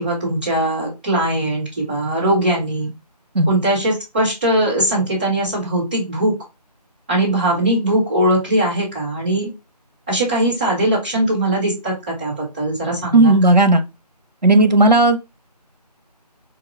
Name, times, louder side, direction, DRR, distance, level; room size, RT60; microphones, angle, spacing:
voice 1, 0.0-2.9 3.5-6.3 7.1-9.5 10.1-11.9 12.2-13.3, right 1 dB, 15° right, 1.5 m, -20 dB
voice 2, 13.1-13.8 14.4-15.2, right 2 dB, 85° right, 1.0 m, -13 dB
4.8 x 2.4 x 3.6 m
figure-of-eight pair, 165°, 21 cm